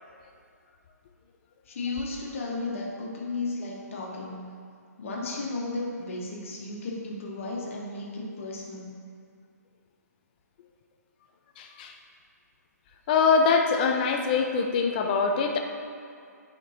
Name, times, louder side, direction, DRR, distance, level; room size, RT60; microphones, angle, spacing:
voice 1, 1.7-4.4 5.0-8.9, left 3 dB, 50° left, -3 dB, 1.5 m, -34 dB
voice 2, 11.6-11.9 13.1-15.6, left 5 dB, 30° left, 3 dB, 0.6 m, -23 dB
10.5 x 5.2 x 2.9 m, 2.3 s
figure-of-eight pair, 145°, 9 cm